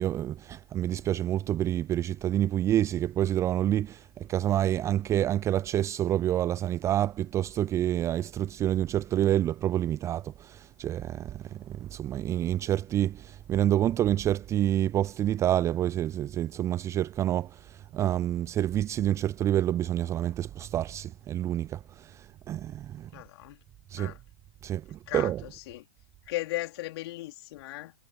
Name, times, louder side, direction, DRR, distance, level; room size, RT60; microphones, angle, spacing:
voice 1, 0.0-4.0 4.3-11.4 11.8-17.5 17.9-21.8 22.5-23.1 23.9-24.1 24.6-25.4, right 12 dB, 15° right, 0.7 m, -27 dB
voice 2, 23.1-23.6 24.0-24.2 25.1-25.8 26.3-27.9, left 17 dB, 40° left, 4.0 m, -36 dB
figure-of-eight pair, 120°, 21 cm